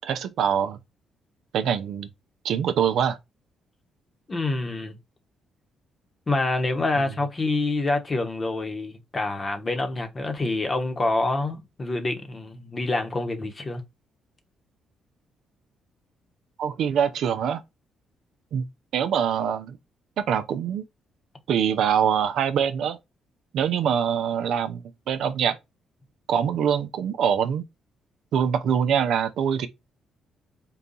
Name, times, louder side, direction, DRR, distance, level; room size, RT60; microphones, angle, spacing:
voice 1, 0.0-0.8 1.5-2.1 2.4-3.2 16.6-17.6 18.5-18.6 18.9-19.8 20.2-20.8 21.5-23.0 23.5-25.6 26.3-27.6 28.3-29.7, right 8 dB, 75° right, 0.5 m, -24 dB
voice 2, 4.3-5.0 6.3-13.8, left 2 dB, 30° left, 0.9 m, -27 dB
3.9 x 2.3 x 3.9 m
cardioid pair, 90°, 0 cm